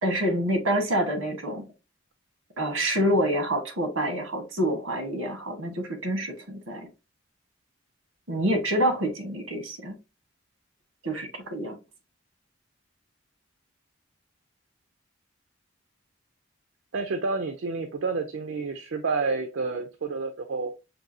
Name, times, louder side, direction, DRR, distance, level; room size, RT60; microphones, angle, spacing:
voice 1, 0.0-1.6 2.6-6.9 8.3-10.0 11.0-11.8, right 1 dB, 90° right, 1.2 m, -27 dB
voice 2, 16.9-20.7, right 4 dB, 75° right, 0.5 m, -29 dB
6.0 x 2.7 x 2.6 m
head